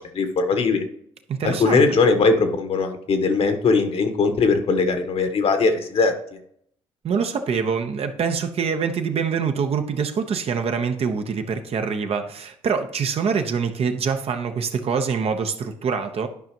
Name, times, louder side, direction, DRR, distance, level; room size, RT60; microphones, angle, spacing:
voice 1, 0.1-0.8 1.4-6.1, left 4 dB, 55° left, 7 dB, 1.3 m, -20 dB
voice 2, 1.3-1.8 7.0-16.3, right 6 dB, 55° right, 6 dB, 1.0 m, -25 dB
12.0 x 5.2 x 3.0 m, 0.68 s
supercardioid pair, 65°, 12 cm